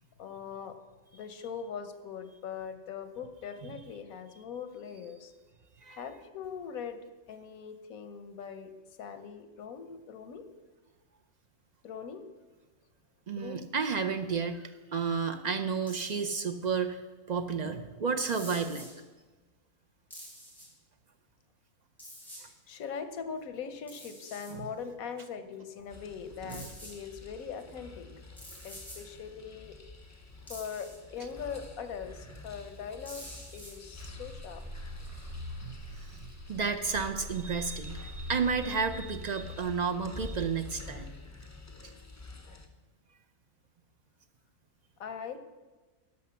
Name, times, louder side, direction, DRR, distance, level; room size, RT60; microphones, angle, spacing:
voice 1, 0.2-0.8 1.1-5.3 5.9-7.0 7.3-8.7 9.0-10.4 11.8-12.2 13.3-13.7 22.7-28.3 28.6-29.8 30.5-33.3 33.5-34.6 35.4-35.5 42.4-42.6 45.0-45.4, left 7 dB, 85° left, 10 dB, 1.3 m, -41 dB
voice 2, 13.3-17.0 17.3-18.9 24.5-24.6 26.4-26.7 35.6-35.7 36.1-41.1, right 5 dB, 60° right, 6 dB, 0.4 m, -32 dB
sound 1, 15.9-16.4 18.2-18.9 20.1-20.7 22.0-22.4 23.9-24.5 26.5-27.0 28.4-29.0 30.5-31.0 33.1-33.7, equal, ahead, 3.7 m, -47 dB
sound 2, 25.9-42.7, left 3 dB, 20° left, 0.5 m, -49 dB
sound 3, 33.9-40.4, left 1 dB, 30° right, 1.1 m, -44 dB
12.0 x 5.4 x 6.9 m, 1.3 s
omnidirectional pair, 1.4 m